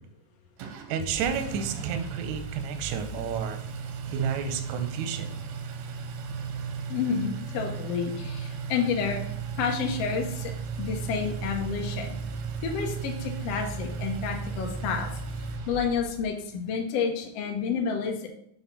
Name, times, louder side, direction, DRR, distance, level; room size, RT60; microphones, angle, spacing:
Engine, 0.6-16.3, right 5 dB, 90° right, 2.7 m, -35 dB
voice 1, 0.9-3.6 4.1-5.3, right 7 dB, 70° right, 7 dB, 1.9 m, -31 dB
voice 2, 6.9-9.2 9.6-10.5 10.8-12.1 12.6-15.1 15.7-18.3, left 6 dB, 75° left, 2 dB, 1.5 m, -29 dB
7.0 x 4.2 x 5.7 m, 0.73 s
omnidirectional pair, 4.2 m